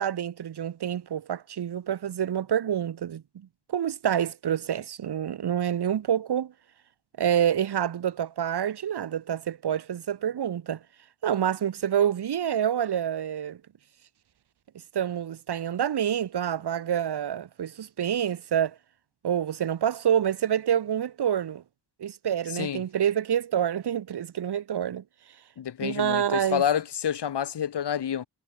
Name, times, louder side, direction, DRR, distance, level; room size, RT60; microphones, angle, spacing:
voice 1, 0.0-3.2 3.7-6.5 7.2-10.8 11.2-13.6 14.9-18.7 19.2-21.6 22.0-25.0 25.8-26.6, right 9 dB, 75° right, 1.2 m, -27 dB
voice 2, 22.5-22.9 25.6-28.3, left 9 dB, 80° left, 1.8 m, -28 dB
wide cardioid pair, 105°, 40 cm